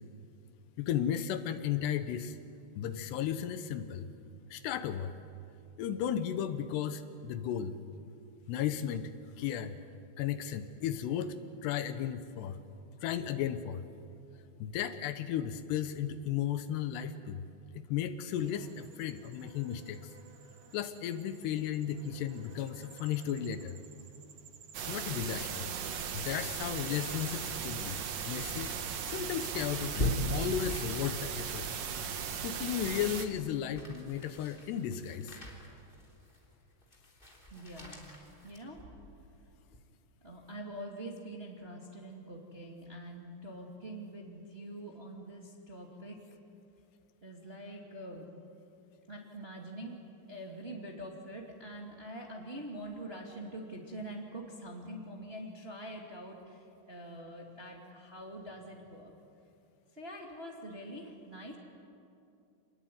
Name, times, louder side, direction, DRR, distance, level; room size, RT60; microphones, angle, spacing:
voice 1, 0.8-2.4 2.8-4.1 4.5-5.1 5.8-7.7 8.5-9.1 9.4-9.8 10.2-12.6 13.0-13.8 14.6-17.4 17.7-20.1 20.7-23.8 24.9-25.7 26.1-28.0 28.2-28.7 29.0-31.7 32.4-35.4, left 9 dB, 80° left, 11 dB, 3.0 m, -35 dB
sound 1, 18.3-29.6, right 7 dB, 85° right, 1.2 m, -54 dB
sound 2, 24.7-33.3, right 7 dB, 70° right, 1.6 m, -37 dB
sound 3, 27.3-39.2 39.7-39.8, left 1 dB, 15° left, 2.8 m, -41 dB
voice 2, 37.5-38.0 38.4-38.8 40.2-46.2 47.2-48.3 49.1-50.0 50.3-59.1 59.9-61.6, right 1 dB, 20° right, 0 dB, 1.6 m, -45 dB
27.5 x 20.0 x 9.4 m, 2.6 s
omnidirectional pair, 5.0 m